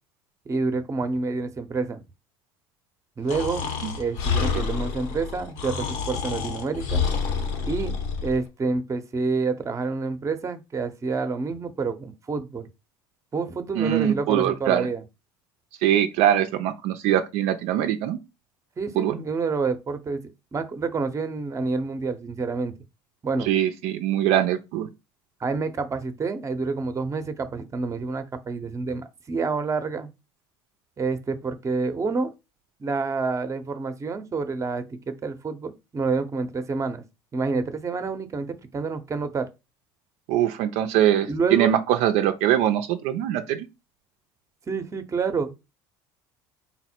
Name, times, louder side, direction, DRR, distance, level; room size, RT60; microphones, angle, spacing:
voice 1, 0.5-2.0 3.2-3.7 4.0-7.0 7.6-7.9 8.2-12.7 13.3-15.0 18.8-20.2 20.5-22.7 23.2-23.5 25.4-30.1 31.0-32.3 32.8-37.0 37.3-39.5 41.3-41.7 44.7-45.6, right 4 dB, 25° right, 0.7 m, -28 dB
Breathing, 3.3-8.4, left 5 dB, 70° left, 1.0 m, -28 dB
voice 2, 13.8-14.9 15.8-18.2 19.0-19.2 23.4-24.9 40.3-43.7, right 11 dB, 70° right, 0.4 m, -22 dB
4.1 x 2.0 x 4.3 m
hypercardioid pair, 80°, 12 cm